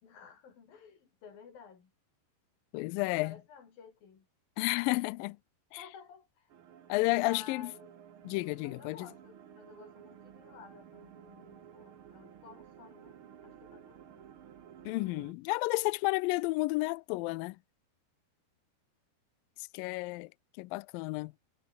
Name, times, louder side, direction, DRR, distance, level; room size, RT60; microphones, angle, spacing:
voice 1, 0.0-1.9 3.2-4.3 5.8-6.5 7.2-8.0 8.6-13.2 13.4-14.3, left 6 dB, 60° left, 5.7 m, -53 dB
voice 2, 2.7-3.3 4.6-5.4 5.7-5.8 6.9-7.6 8.2-9.1 14.9-17.6 19.7-20.3 20.6-21.3, left 23 dB, 85° left, 2.0 m, -31 dB
sound 1, 6.5-15.3, right 9 dB, 60° right, 1.3 m, -54 dB
omnidirectional pair, 4.6 m